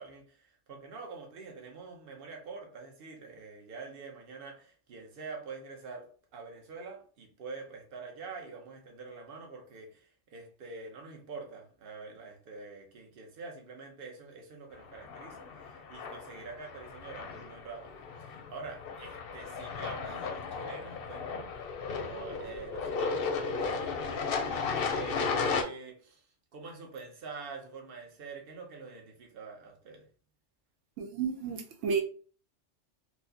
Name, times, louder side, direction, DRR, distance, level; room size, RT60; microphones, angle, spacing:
voice 1, 0.0-30.1, right 4 dB, 55° right, 0.9 m, -46 dB
sound 1, 14.9-25.6, left 5 dB, 60° left, 0.7 m, -35 dB
voice 2, 31.0-32.0, right 6 dB, 85° right, 1.0 m, -31 dB
4.4 x 2.1 x 2.7 m
omnidirectional pair, 1.3 m